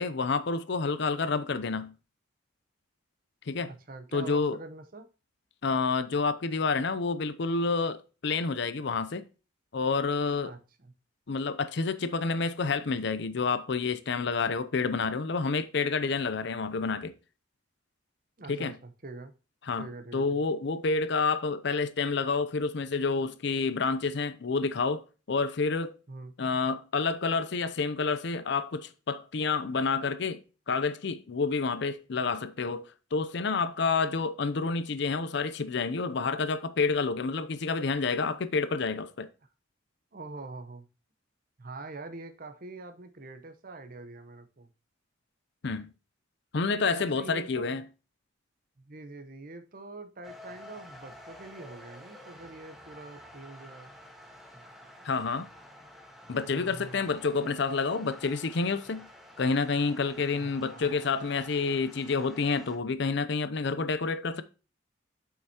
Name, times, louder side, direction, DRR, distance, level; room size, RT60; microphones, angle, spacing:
voice 1, 0.0-1.9 3.5-3.7 4.1-4.6 5.6-9.3 9.7-10.5 11.3-17.1 18.5-18.8 19.7-19.9 20.1-25.9 26.4-30.4 30.7-39.3 45.6-45.9 46.5-47.8 55.0-55.5 56.3-59.1 59.4-64.4, left 4 dB, 60° left, 0.5 m, -29 dB
voice 2, 3.6-5.1 10.4-10.9 18.4-19.3 19.8-20.5 26.1-26.3 40.1-40.9 41.6-44.7 47.0-47.6 48.8-54.0 56.4-57.0 60.4-61.0, right 3 dB, 45° right, 0.8 m, -44 dB
sound 1, 50.2-62.8, left 1 dB, ahead, 1.0 m, -50 dB
7.9 x 5.6 x 2.8 m
head